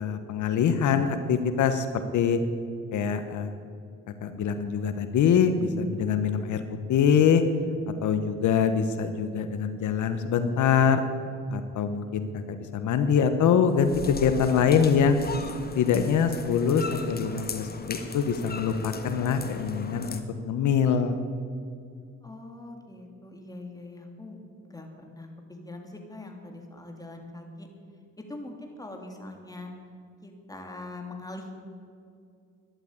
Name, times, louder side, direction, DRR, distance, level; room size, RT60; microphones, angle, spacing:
voice 1, 0.0-2.4 2.9-3.5 4.2-6.6 6.9-7.4 8.0-11.0 11.5-15.2 15.7-21.2, left 7 dB, 75° left, 9 dB, 1.1 m, -24 dB
sound 1, 13.7-20.2, left 4 dB, 30° left, 1.6 m, -38 dB
voice 2, 22.2-27.7 28.2-29.7 30.2-31.6, left 2 dB, 10° left, 2 dB, 3.1 m, -42 dB
13.0 x 11.0 x 9.9 m, 2.3 s
cardioid pair, 90°, 30 cm